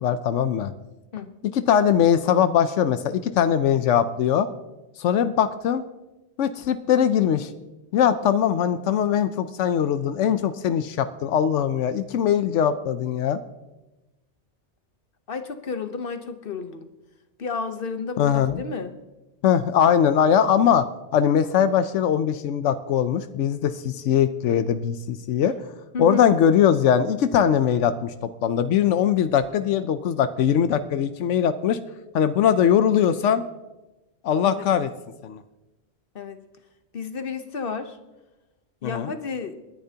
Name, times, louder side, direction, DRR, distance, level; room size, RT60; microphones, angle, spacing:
voice 1, 0.0-0.7 1.4-4.5 5.0-5.8 6.4-7.5 7.9-13.4 18.2-18.6 19.4-20.9 21.1-25.5 26.0-28.1 28.4-31.8 32.1-33.4 34.2-34.9 35.2-35.4 38.8-39.1, left 8 dB, 85° left, 11 dB, 1.0 m, -21 dB
voice 2, 15.3-16.9 17.4-19.0 25.4-25.5 25.9-26.2 34.4-34.7 36.1-36.4 36.9-38.0 38.8-39.6, left 5 dB, 55° left, 9 dB, 1.1 m, -31 dB
28.0 x 10.5 x 2.8 m, 1.0 s
omnidirectional pair, 1.2 m